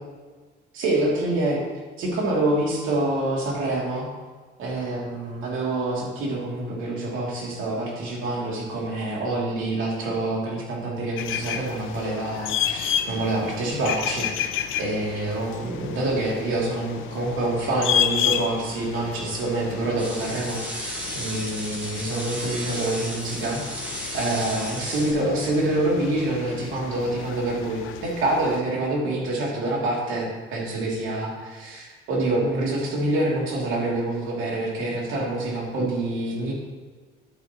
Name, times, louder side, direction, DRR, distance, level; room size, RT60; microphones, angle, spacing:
voice 1, 0.7-1.6 2.0-4.1 4.6-14.5 14.8-23.6 24.1-36.5, right 2 dB, 90° right, -3 dB, 2.8 m, -26 dB
sound 1, 11.2-28.6, left 10 dB, 85° left, 0.6 m, -32 dB
sound 2, 20.0-25.1, equal, 5° right, 2.0 m, -34 dB
10.5 x 9.0 x 3.0 m, 1.4 s
cardioid pair, 90°, 20 cm